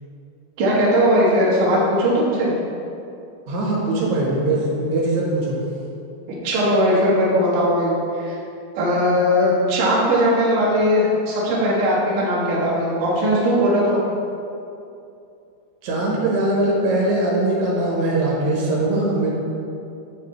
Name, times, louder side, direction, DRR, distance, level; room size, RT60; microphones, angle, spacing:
voice 1, 0.6-2.5 6.3-8.3 8.8-14.0, equal, 60° right, -6 dB, 2.5 m, -19 dB
voice 2, 3.5-5.6 15.8-19.3, right 2 dB, 85° right, -4 dB, 3.3 m, -21 dB
7.2 x 7.0 x 3.3 m, 2.6 s
omnidirectional pair, 4.6 m